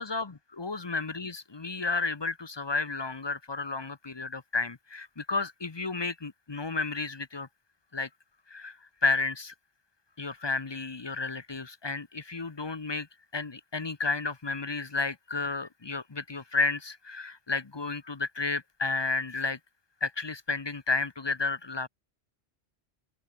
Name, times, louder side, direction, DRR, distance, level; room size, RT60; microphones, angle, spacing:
voice 1, 0.0-7.5 7.9-8.1 8.5-9.5 10.2-13.1 13.3-19.6 20.0-21.9, left 3 dB, 25° left, 0.8 m, -32 dB
open air
omnidirectional pair, 1.1 m